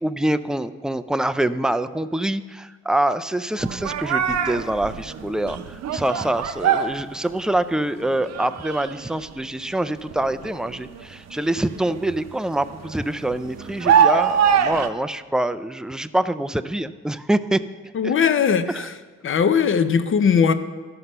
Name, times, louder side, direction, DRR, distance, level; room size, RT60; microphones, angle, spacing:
voice 1, 0.0-17.6 18.0-18.1 18.7-18.9, right 1 dB, ahead, 13 dB, 0.3 m, -25 dB
sound 1, 3.6-7.8 8.0-9.5 10.0-14.9, right 7 dB, 60° right, 0.7 m, -23 dB
voice 2, 17.9-18.9 19.2-20.5, left 6 dB, 45° left, 11 dB, 0.7 m, -19 dB
12.5 x 5.9 x 5.4 m, 1.4 s
cardioid pair, 90°, 30 cm